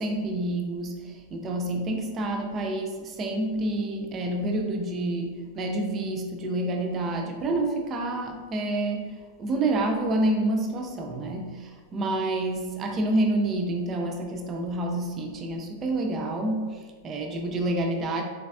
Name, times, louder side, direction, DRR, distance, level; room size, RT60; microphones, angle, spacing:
voice 1, 0.0-18.2, right 2 dB, 30° right, 2 dB, 0.5 m, -28 dB
4.0 x 3.2 x 2.4 m, 1.5 s
figure-of-eight pair, 90°, 0 cm